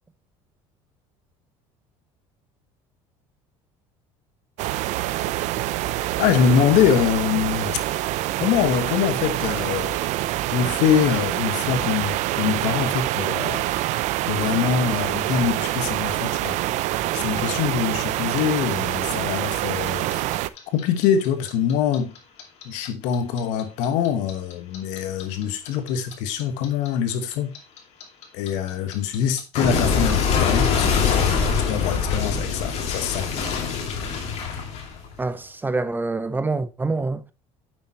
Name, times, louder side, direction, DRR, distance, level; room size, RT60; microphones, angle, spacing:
sound 1, 4.6-20.5, right 15 dB, 65° right, 0.6 m, -26 dB
voice 1, 6.2-7.8 8.4-10.0 10.5-13.6 14.3-16.6 17.1-20.2 20.7-22.1 22.6-27.5 28.3-33.3, left 8 dB, 75° left, 1.5 m, -24 dB
Clock, 19.9-22.9 23.1-26.1 26.4-35.3, left 6 dB, 55° left, 2.5 m, -24 dB
voice 2, 35.2-37.3, right 3 dB, 15° right, 0.7 m, -26 dB
9.4 x 6.8 x 3.0 m
supercardioid pair, 100°, 13 cm